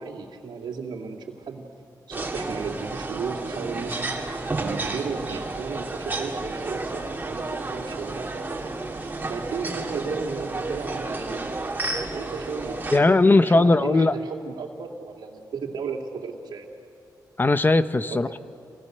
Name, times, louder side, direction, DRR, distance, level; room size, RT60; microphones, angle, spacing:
voice 1, 0.0-1.7 2.1-4.1 4.6-8.7 9.0-11.5 12.1-16.7 18.1-18.4, right 5 dB, 80° right, 2 dB, 2.9 m, -34 dB
sound 1, 2.1-13.0, right 2 dB, 25° right, 3.0 m, -31 dB
voice 2, 12.9-14.1 17.4-18.4, left 2 dB, 25° left, 11 dB, 0.9 m, -18 dB
29.5 x 25.0 x 6.8 m, 2.4 s
cardioid pair, 75°, 8 cm